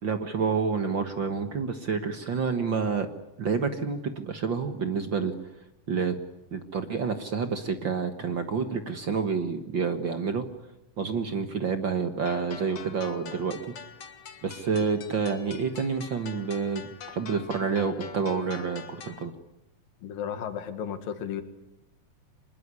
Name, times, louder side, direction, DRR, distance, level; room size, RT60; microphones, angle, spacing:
voice 1, 0.0-3.1 3.4-5.3 5.9-6.1 6.5-10.4 11.0-13.6 14.4-19.3, right 5 dB, 50° right, 8 dB, 1.4 m, -28 dB
sound 1, 12.3-19.3, left 6 dB, 50° left, 1.3 m, -44 dB
voice 2, 20.0-21.4, left 8 dB, 90° left, 9 dB, 3.5 m, -34 dB
25.5 x 21.5 x 9.7 m, 0.90 s
omnidirectional pair, 3.9 m